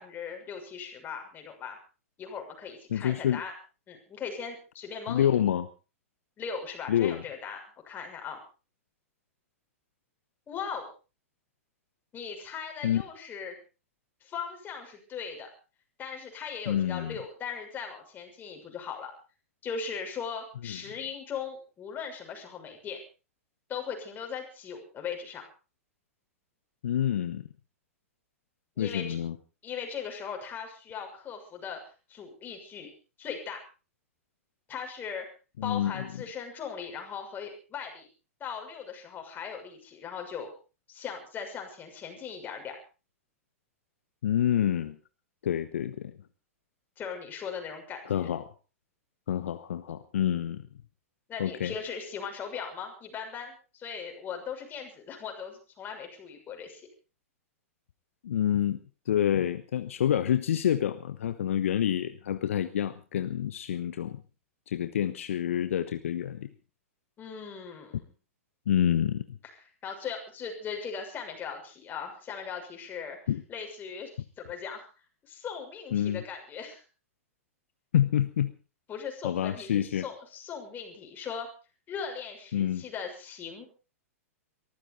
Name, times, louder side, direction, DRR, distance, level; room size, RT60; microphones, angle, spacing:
voice 1, 0.0-1.8 2.2-3.5 3.9-5.3 6.4-8.4 10.5-10.9 12.1-13.5 14.2-15.5 16.0-19.1 19.6-23.0 23.7-25.4 28.8-29.2 29.6-31.8 32.1-32.9 33.2-33.6 34.7-35.3 35.6-38.1 38.4-40.5 40.9-42.8 47.0-48.3 51.3-56.9 67.2-68.0 69.8-73.2 73.5-74.1 74.4-74.9 75.3-76.8 78.9-81.5 81.9-83.6, left 6 dB, 25° left, 3 dB, 6.6 m, -39 dB
voice 2, 2.9-3.4 5.1-5.7 6.9-7.2 12.8-13.0 16.7-17.2 20.6-20.8 26.8-27.4 28.8-29.4 35.6-36.1 44.2-45.0 45.4-46.2 48.0-48.5 49.3-50.7 51.4-51.7 58.2-58.8 59.1-64.2 64.7-66.5 68.7-69.4 73.3-73.4 75.9-76.2 77.9-78.5 79.2-80.0 82.5-82.8, left 10 dB, 65° left, 12 dB, 1.0 m, -27 dB
23.5 x 14.5 x 4.1 m, 0.34 s
figure-of-eight pair, 105°, 8 cm